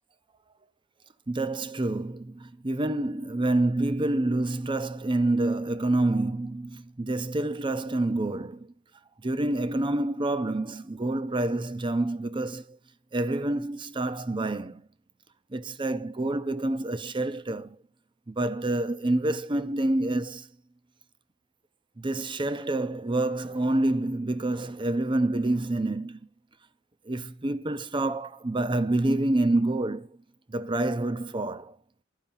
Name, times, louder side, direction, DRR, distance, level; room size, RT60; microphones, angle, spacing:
voice 1, 1.3-8.7 9.2-12.8 13.1-14.8 15.5-17.8 18.3-20.5 22.0-26.2 27.0-30.2 30.5-31.7, right 2 dB, 25° right, 0.7 m, -27 dB
12.5 x 5.1 x 7.2 m
head